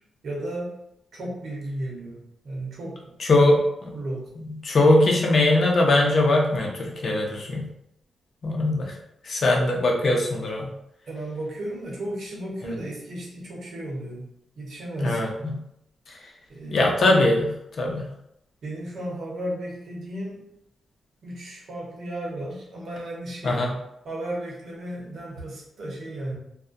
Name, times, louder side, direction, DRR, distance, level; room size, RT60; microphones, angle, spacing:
voice 1, 0.2-0.7 1.1-3.6 3.9-4.3 11.1-14.3 14.6-15.5 16.5-17.2 18.6-20.4 21.2-23.7 24.0-26.3, right 1 dB, 75° right, -4 dB, 0.9 m, -34 dB
voice 2, 3.2-3.6 4.6-7.6 8.4-8.9 9.3-10.7 15.0-15.5 16.7-17.5 17.8-18.0 23.4-23.7, left 2 dB, 60° left, 0 dB, 0.6 m, -20 dB
2.3 x 2.1 x 2.5 m, 0.80 s
cardioid pair, 90°, 0 cm